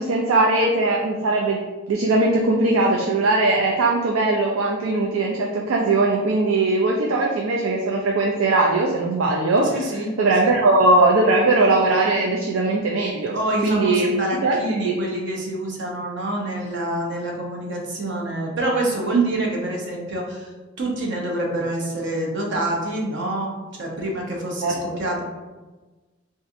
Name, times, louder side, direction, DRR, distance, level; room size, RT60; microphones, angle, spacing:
voice 1, 0.0-1.6 1.9-13.3 13.6-14.1 14.4-14.9 19.1-19.4 24.6-24.8, right 2 dB, 90° right, -1 dB, 0.4 m, -20 dB
voice 2, 9.6-10.1 10.4-10.6 13.3-20.5 20.8-23.5 23.8-25.2, right 1 dB, 60° right, -1 dB, 0.8 m, -27 dB
4.0 x 2.5 x 2.5 m, 1.2 s
head